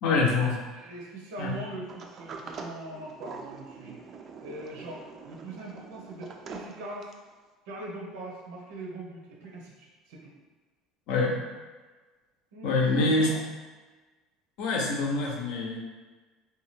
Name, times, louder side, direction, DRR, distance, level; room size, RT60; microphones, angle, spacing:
voice 1, 0.0-0.6 1.4-1.6 11.1-11.4 12.6-13.3 14.6-15.8, left 3 dB, 70° left, 0 dB, 0.6 m, -25 dB
voice 2, 0.7-4.0 4.4-7.1 7.7-10.3 12.5-12.9 13.2-13.4, right 2 dB, 90° right, -2 dB, 0.8 m, -41 dB
Sliding door, 1.9-7.3, right 4 dB, 40° right, 0.3 m, -44 dB
2.7 x 2.3 x 3.2 m, 1.3 s
supercardioid pair, 120°, 0 cm